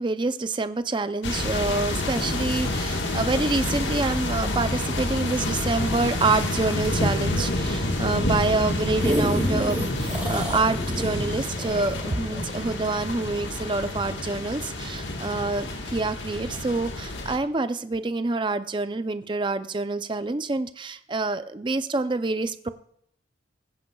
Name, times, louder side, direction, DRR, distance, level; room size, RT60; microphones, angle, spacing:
voice 1, 0.0-22.7, right 3 dB, 25° right, 11 dB, 0.5 m, -27 dB
sound 1, 1.2-17.4, left 1 dB, 90° left, 1.5 m, -28 dB
sound 2, 8.7-13.3 13.8-13.9, right 1 dB, 5° right, 2.3 m, -30 dB
20.5 x 10.0 x 2.3 m, 0.70 s
head